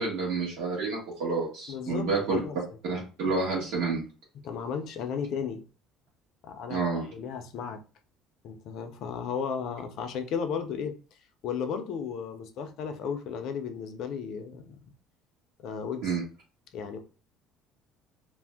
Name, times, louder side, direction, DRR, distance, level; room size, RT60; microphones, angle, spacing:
voice 1, 0.0-2.4 2.8-4.0 6.7-7.1 16.0-16.2, right 4 dB, 65° right, 1.1 m, -29 dB
voice 2, 1.7-2.6 4.3-5.7 6.4-7.8 8.4-14.9 15.6-16.1 16.7-17.0, left 6 dB, 50° left, 0.4 m, -35 dB
2.5 x 2.0 x 3.4 m
cardioid pair, 175°, 0 cm